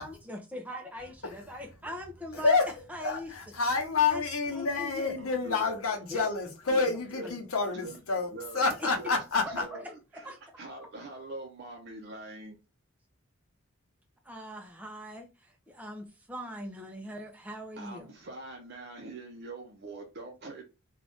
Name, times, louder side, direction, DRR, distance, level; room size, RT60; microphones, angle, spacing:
voice 1, 0.0-2.6 2.9-3.3 4.1-4.2 4.5-5.2 6.1-6.2 7.2-7.3 9.7-9.8 10.2-10.4 14.3-15.3 15.7-18.0, equal, 5° right, 0.5 m, -41 dB
voice 2, 1.2-1.6 2.3-9.7, left 4 dB, 85° left, 0.9 m, -29 dB
voice 3, 5.2-5.8 6.7-7.3 7.7-8.0 8.3-9.1 9.5-12.6 17.8-20.6, right 2 dB, 50° right, 0.6 m, -44 dB
2.6 x 2.4 x 3.4 m
head